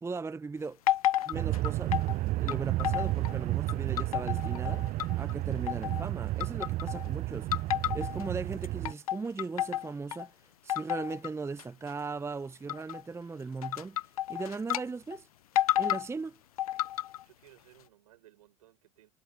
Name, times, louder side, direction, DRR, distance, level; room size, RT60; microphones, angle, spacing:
voice 1, 0.0-0.8 1.3-1.9 2.4-4.9 5.2-7.5 7.9-10.3 10.6-14.0 14.3-15.3 15.8-16.4, right 4 dB, 15° right, 0.8 m, -38 dB
sound 1, 0.9-2.1 2.5-3.4 3.7-5.3 5.7-6.1 6.4-7.1 7.5-8.3 8.6-10.3 10.7-11.3 11.6-11.9 12.7-13.0 13.6-14.8 15.1-15.2 15.6-16.1 16.6-17.2, left 13 dB, 80° left, 0.4 m, -31 dB
sound 2, 1.3-8.9, right 17 dB, 45° right, 0.5 m, -32 dB
voice 2, 17.2-19.1, right 14 dB, 75° right, 6.7 m, -59 dB
hypercardioid pair, 70°, 18 cm